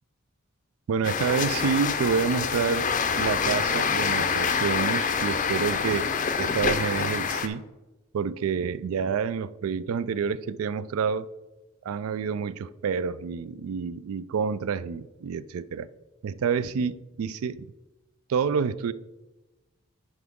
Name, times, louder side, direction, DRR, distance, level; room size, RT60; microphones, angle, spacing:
voice 1, 0.9-2.9 3.2-6.1 6.4-7.6 8.1-11.3 11.8-15.9 16.2-17.7 18.3-18.9, right 6 dB, 80° right, 0.3 m, -28 dB
sound 1, 1.0-7.5, left 6 dB, 40° left, 0.5 m, -26 dB
9.8 x 4.6 x 3.6 m
head